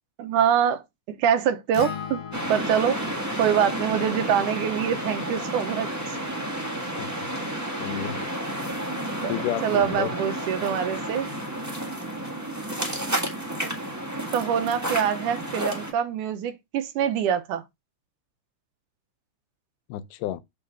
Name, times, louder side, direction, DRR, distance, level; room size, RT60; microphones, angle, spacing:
voice 1, 0.2-2.2 2.5-3.0 3.4-5.9 9.2-9.3 9.6-11.3 14.3-17.6, right 8 dB, 90° right, 2.4 m, -24 dB
Acoustic guitar, 1.7-6.0, left 7 dB, 65° left, 1.9 m, -40 dB
sound 1, 2.3-15.9, right 1 dB, 20° right, 0.5 m, -31 dB
voice 2, 7.0-7.3 7.8-8.2 9.3-10.2 19.9-20.4, left 12 dB, 90° left, 2.2 m, -31 dB
7.6 x 3.8 x 4.6 m
omnidirectional pair, 3.6 m